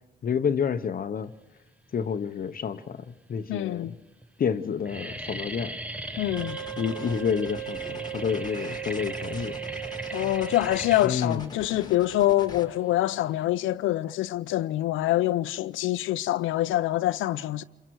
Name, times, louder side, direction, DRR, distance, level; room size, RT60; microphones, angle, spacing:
voice 1, 0.2-1.3 1.9-3.9 4.4-5.8 6.8-9.6 11.0-11.4, left 7 dB, 45° left, 0.9 m, -29 dB
sound 1, 2.3-2.8 3.5-3.6 3.9-4.2 4.5-13.4, right 1 dB, 5° right, 1.0 m, -39 dB
voice 2, 3.5-3.9 6.2-6.6 10.1-17.6, left 15 dB, 85° left, 0.7 m, -25 dB
Wind instrument woodwind instrument, 6.3-11.0, right 14 dB, 90° right, 1.5 m, -37 dB
sound 2, 6.4-12.7, left 3 dB, 20° left, 1.7 m, -44 dB
27.0 x 23.0 x 4.7 m
cardioid pair, 90°, 20 cm